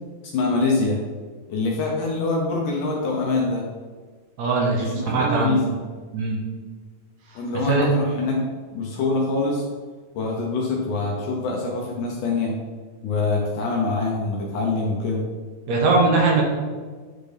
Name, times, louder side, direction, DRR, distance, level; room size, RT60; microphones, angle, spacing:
voice 1, 0.3-1.0 1.5-3.6 4.7-5.6 7.4-8.4 8.7-9.6 10.1-12.6 13.0-15.2, left 3 dB, 70° left, -1 dB, 2.1 m, -24 dB
voice 2, 4.4-5.6 6.1-6.4 7.6-7.9 15.7-16.4, right 3 dB, 75° right, -1 dB, 1.7 m, -20 dB
9.4 x 4.0 x 3.4 m, 1.4 s
omnidirectional pair, 4.4 m